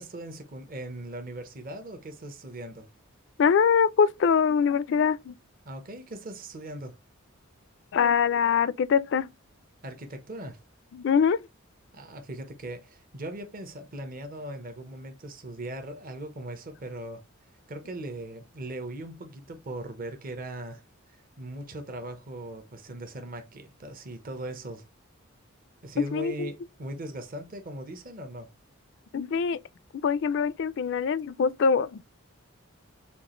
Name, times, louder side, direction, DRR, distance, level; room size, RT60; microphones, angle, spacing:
voice 1, 0.0-2.9 5.7-7.0 9.8-10.6 11.9-17.2 17.7-20.8 21.1-24.9 25.8-28.5, right 1 dB, 40° right, 0.8 m, -39 dB
voice 2, 3.4-5.3 7.9-9.3 10.9-11.4 26.1-26.5 29.1-29.6 30.0-32.0, left 6 dB, 55° left, 0.3 m, -23 dB
7.0 x 2.4 x 3.0 m
head